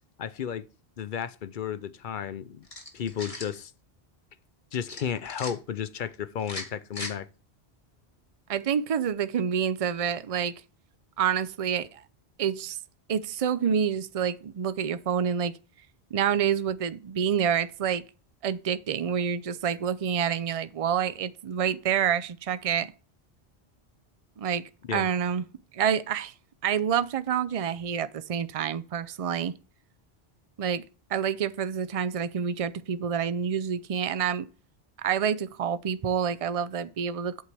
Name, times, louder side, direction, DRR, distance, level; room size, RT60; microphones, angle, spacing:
voice 1, 0.2-0.6 1.0-2.7 2.9-3.7 4.7-7.3 24.8-25.1, left 8 dB, 55° left, 0.7 m, -33 dB
sound 1, 2.6-3.5 4.9-5.5 6.4-7.1, left 2 dB, 35° left, 1.8 m, -38 dB
voice 2, 8.5-10.5 11.2-12.0 12.4-12.8 13.1-15.5 16.1-18.0 18.4-22.9 24.4-24.6 24.9-25.4 25.7-26.3 26.6-29.5 30.6-30.8 31.1-34.5 35.0-37.4, right 8 dB, 45° right, 0.5 m, -27 dB
8.1 x 8.0 x 3.4 m
omnidirectional pair, 1.1 m